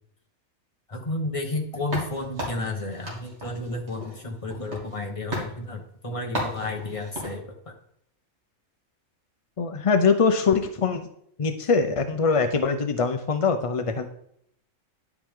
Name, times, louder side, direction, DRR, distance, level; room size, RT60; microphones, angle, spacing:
voice 1, 0.9-7.7, left 2 dB, 25° left, 2 dB, 1.2 m, -32 dB
sound 1, 1.9-5.0 5.3-5.5 6.3-7.4, equal, 55° right, 2.7 m, -34 dB
voice 2, 9.6-11.1 11.4-14.1, left 5 dB, 50° left, 7 dB, 0.4 m, -23 dB
10.5 x 8.0 x 3.7 m, 0.70 s
omnidirectional pair, 1.4 m